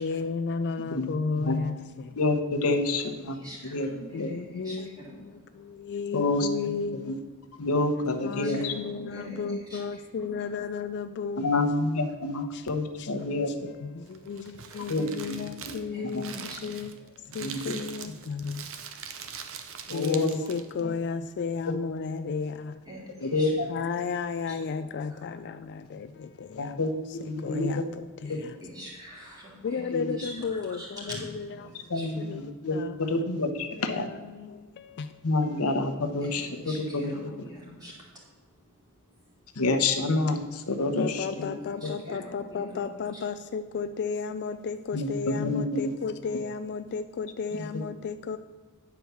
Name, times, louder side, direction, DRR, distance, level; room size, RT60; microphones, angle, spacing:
voice 1, 0.0-2.2 4.1-5.0 5.2-7.2 8.0-11.8 12.1-12.7 13.0-19.2 19.9-22.8 23.7-28.6 29.6-33.3 33.8-35.9 37.3-37.4 40.9-48.4, left 5 dB, 50° left, 10 dB, 0.3 m, -34 dB
voice 2, 2.2-3.4 3.6-3.9 4.2-4.3 6.1-6.5 7.1-7.2 7.6-8.7 11.4-13.7 14.9-15.4 17.4-17.8 19.9-20.4 23.2-23.7 26.5-27.8 29.9-30.1 31.9-32.8 33.1-34.1 35.2-37.1 39.6-41.5 44.9-45.9, left 2 dB, 85° left, 6 dB, 0.9 m, -28 dB
voice 3, 3.3-5.7 8.3-10.3 15.9-16.8 19.2-19.9 22.9-23.5 25.1-25.2 28.2-29.8 30.2-32.1 36.2-38.5 39.0-39.6 41.3-41.4 41.8-42.8 43.1-43.2, equal, 20° right, -4 dB, 2.8 m, -45 dB
Crumpling crinkling, 14.0-20.8, right 7 dB, 65° right, 0.8 m, -42 dB
9.5 x 4.6 x 6.8 m, 1.4 s
head